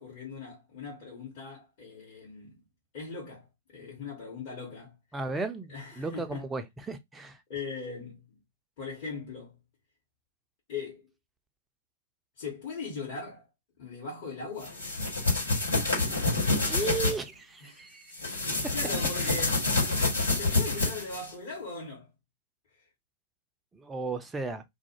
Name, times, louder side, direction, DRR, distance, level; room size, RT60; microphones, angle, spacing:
voice 1, 0.0-2.6 2.9-4.9 5.7-6.5 7.5-8.4 8.8-9.6 10.7-11.1 12.4-13.5 13.8-14.8 15.3-17.0 17.6-17.9 18.2-19.6 20.2-22.1, left 4 dB, 45° left, 1.1 m, -40 dB
voice 2, 5.1-7.4 16.7-18.1 19.2-19.3 23.7-24.6, right 4 dB, 10° right, 0.4 m, -35 dB
sound 1, 14.6-17.2 18.1-21.3, left 3 dB, 75° left, 1.3 m, -27 dB
2.4 x 2.1 x 2.8 m
figure-of-eight pair, 105°, 0 cm